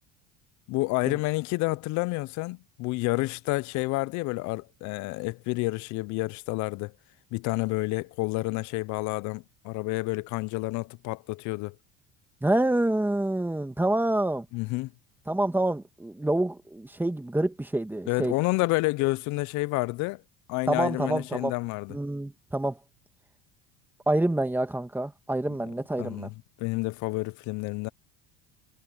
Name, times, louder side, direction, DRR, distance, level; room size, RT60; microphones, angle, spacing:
voice 1, 0.7-6.9 7.3-11.8 14.5-14.9 18.1-20.2 20.5-21.9 26.0-27.9, left 23 dB, 60° left, 0.7 m, -29 dB
voice 2, 12.4-14.5 15.3-18.3 20.7-21.5 21.9-22.8 24.1-26.3, right 1 dB, 5° right, 2.3 m, -27 dB
supercardioid pair, 100°, 32 cm